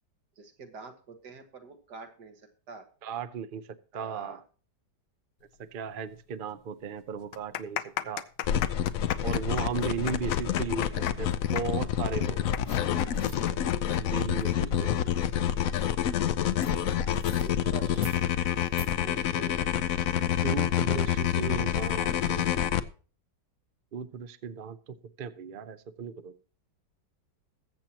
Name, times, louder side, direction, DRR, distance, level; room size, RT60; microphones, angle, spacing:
voice 1, 0.4-2.4 2.7-2.9 3.9-4.4 17.4-18.2 19.0-19.5, right 4 dB, 75° right, 2.1 m, -46 dB
voice 2, 3.0-3.6 3.9-4.4 5.6-8.3 9.2-12.5 14.0-14.9 19.4-19.5 20.4-22.5 23.9-26.3, right 6 dB, 55° right, 0.6 m, -36 dB
sound 1, 6.1-6.2 6.5-6.6 7.2-14.5 14.7-14.8 15.6-15.9, left 11 dB, 85° left, 1.3 m, -35 dB
sound 2, 8.4-22.8, left 10 dB, 65° left, 0.9 m, -28 dB
sound 3, 12.6-12.8 13.1-13.4 16.6-16.7 17.1-17.5 17.9-18.2 18.6-18.9, right 3 dB, 30° right, 1.1 m, -46 dB
21.0 x 7.5 x 2.9 m
omnidirectional pair, 1.8 m